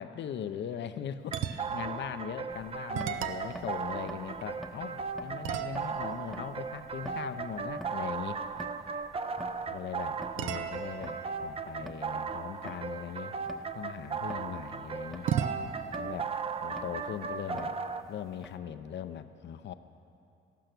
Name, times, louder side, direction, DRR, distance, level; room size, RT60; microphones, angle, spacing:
voice 1, 0.0-8.4 9.7-13.4 13.7-15.3 15.9-16.3 16.6-17.7 18.1-19.7, left 9 dB, 65° left, 11 dB, 0.7 m, -40 dB
sound 1, 1.3-18.0, right 5 dB, 30° right, 0.6 m, -37 dB
sound 2, 1.3-2.0 2.4-2.5 2.9-4.9 5.4-8.1 10.4-13.0 15.3-17.9, right 9 dB, 85° right, 0.7 m, -39 dB
sound 3, 2.5-18.6, equal, ahead, 0.8 m, -50 dB
14.0 x 12.0 x 6.1 m, 2.6 s
cardioid pair, 90°, 20 cm